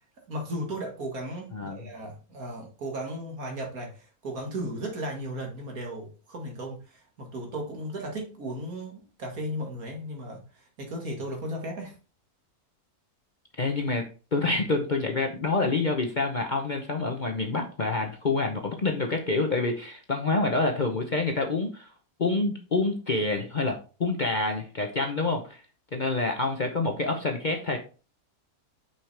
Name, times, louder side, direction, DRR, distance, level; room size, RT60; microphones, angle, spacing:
voice 1, 0.3-11.9, right 1 dB, 70° right, 2.3 m, -35 dB
voice 2, 1.5-1.9 13.6-21.9 22.2-25.6 25.9-27.8, left 3 dB, 40° left, 0.8 m, -27 dB
6.0 x 5.8 x 3.3 m
omnidirectional pair, 1.6 m